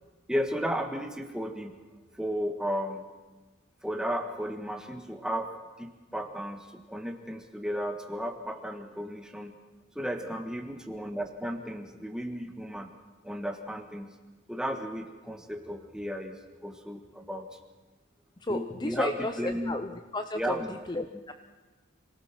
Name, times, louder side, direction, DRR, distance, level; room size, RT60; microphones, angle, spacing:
voice 1, 0.3-1.7 2.1-3.0 3.8-5.5 5.8-9.5 9.9-12.9 13.2-14.1 14.5-17.5 18.5-19.8 20.3-21.0, equal, 5° right, 4 dB, 1.6 m, -34 dB
voice 2, 18.4-20.6 20.9-21.3, left 2 dB, 20° left, 7 dB, 0.7 m, -33 dB
26.0 x 18.5 x 6.0 m, 1.3 s
head